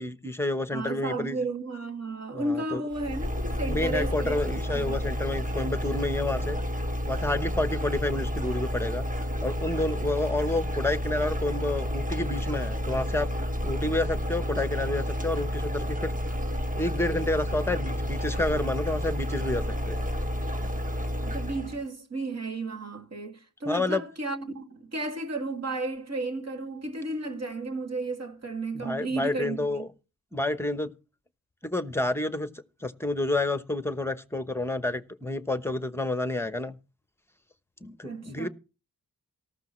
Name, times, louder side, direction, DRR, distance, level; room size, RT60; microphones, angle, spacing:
voice 1, 0.0-1.4 2.3-2.8 3.7-6.6 7.0-9.1 9.4-13.3 13.6-16.1 16.8-20.0 23.6-24.0 28.7-29.9 30.3-30.9 31.6-32.5 32.8-36.8 37.8-38.5, left 2 dB, 5° left, 1.0 m, -29 dB
voice 2, 0.7-4.4 4.7-5.1 21.2-29.9 38.0-38.5, right 2 dB, 45° right, 2.3 m, -33 dB
sound 1, 2.9-21.8, equal, 20° right, 1.4 m, -30 dB
18.0 x 14.0 x 3.1 m
wide cardioid pair, 115°, 36 cm